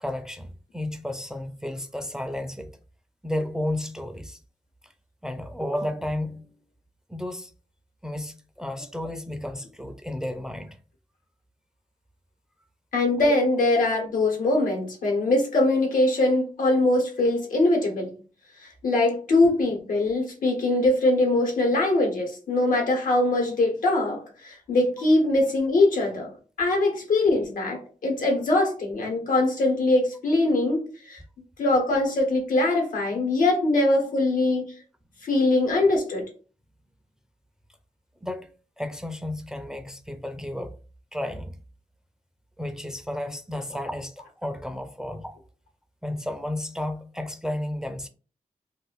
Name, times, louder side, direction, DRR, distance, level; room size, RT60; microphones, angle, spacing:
voice 1, 0.0-2.7 3.2-4.4 5.2-6.6 7.1-7.5 8.0-10.8 38.2-38.5 38.8-40.7 41.1-41.6 42.6-45.4 46.0-48.1, left 1 dB, 5° right, 0.4 m, -32 dB
voice 2, 12.9-18.2 18.6-26.3 26.6-31.2 31.6-34.7 35.2-36.3, left 2 dB, 85° left, 1.1 m, -22 dB
2.5 x 2.5 x 3.9 m
wide cardioid pair, 105°, 14 cm